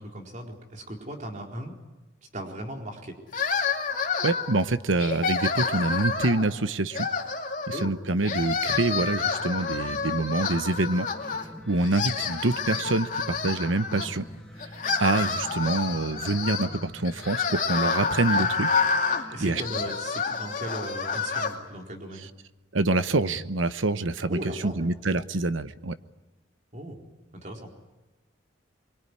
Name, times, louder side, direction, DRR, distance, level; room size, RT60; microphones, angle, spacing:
voice 1, 0.0-1.7 2.3-3.1 7.7-7.9 19.3-22.3 24.3-24.9 26.7-27.0 27.3-27.7, right 1 dB, 40° right, 2 dB, 4.3 m, -37 dB
sound 1, 3.3-4.6 5.0-6.5 6.9-7.9 8.2-11.5 11.8-14.1 14.6-21.5, left 5 dB, 45° left, 2.6 m, -28 dB
voice 2, 4.2-7.1 7.7-11.1 11.7-14.2 15.0-18.8 19.4-19.6 22.7-25.9, right 2 dB, 85° right, 12 dB, 1.0 m, -26 dB
sound 2, 9.0-19.5, left 1 dB, 5° left, 2.5 m, -45 dB
24.5 x 24.0 x 9.9 m, 1.1 s
head